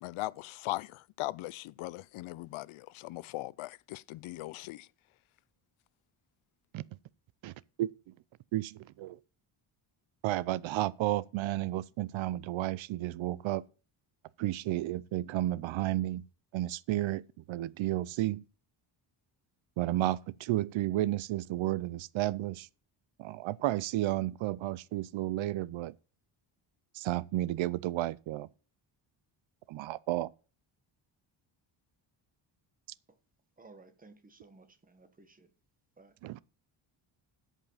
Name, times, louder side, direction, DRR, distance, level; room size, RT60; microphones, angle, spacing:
voice 1, 0.0-4.9, left 18 dB, 90° left, 0.6 m, -39 dB
voice 2, 8.5-9.2 10.2-13.6 14.4-16.2 16.5-17.2 17.5-18.4 19.8-22.7 23.2-25.9 27.0-28.5 29.7-30.3 36.2-36.4, right 15 dB, 75° right, 0.6 m, -32 dB
voice 3, 33.6-35.5 36.0-36.1, right 3 dB, 20° right, 1.2 m, -56 dB
13.5 x 5.5 x 5.5 m
cardioid pair, 155°, 47 cm